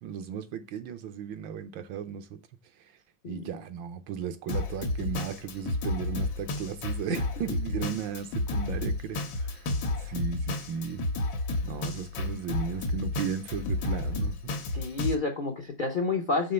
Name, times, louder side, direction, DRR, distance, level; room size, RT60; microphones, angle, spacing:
voice 1, 0.0-2.4 3.3-9.7 10.0-11.0 11.6-14.5, right 8 dB, 80° right, 1.5 m, -35 dB
Drum kit, 4.5-15.1, left 2 dB, 90° left, 1.7 m, -31 dB
voice 2, 14.7-16.5, left 4 dB, 70° left, 0.4 m, -29 dB
5.5 x 3.7 x 5.3 m
omnidirectional pair, 2.1 m